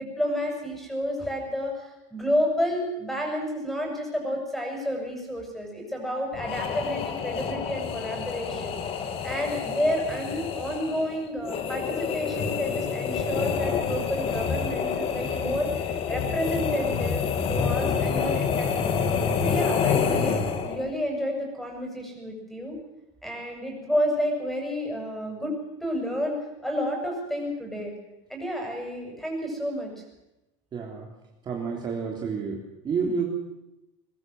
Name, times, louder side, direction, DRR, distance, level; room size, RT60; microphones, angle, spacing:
voice 1, 0.0-8.8 9.2-19.0 19.4-22.8 23.2-25.5 25.8-26.4 26.6-27.9 28.3-29.9, equal, ahead, 2 dB, 7.2 m, -30 dB
sound 1, 6.3-20.9, left 6 dB, 35° left, 2.5 m, -28 dB
voice 2, 30.7-31.1 31.4-33.3, right 5 dB, 30° right, 0 dB, 3.6 m, -29 dB
22.0 x 21.5 x 7.9 m, 0.95 s
cardioid pair, 155°, 16 cm